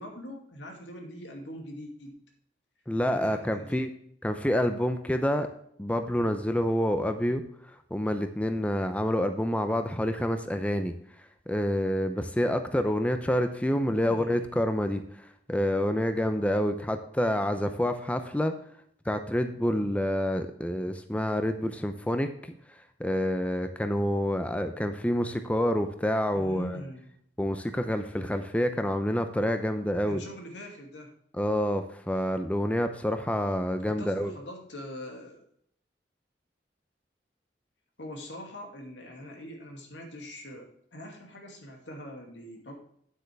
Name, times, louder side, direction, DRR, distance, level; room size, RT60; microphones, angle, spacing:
voice 1, 0.0-2.2 3.0-3.8 13.7-14.5 26.3-27.1 30.1-31.1 33.9-35.4 38.0-42.7, equal, 85° left, 2 dB, 2.5 m, -43 dB
voice 2, 2.9-3.9 4.2-5.5 5.8-7.4 7.9-10.9 11.5-15.0 15.5-18.5 19.1-22.5 23.0-26.8 27.4-30.2 31.4-34.3, equal, 10° left, 8 dB, 0.6 m, -28 dB
9.1 x 8.2 x 3.4 m, 0.67 s
head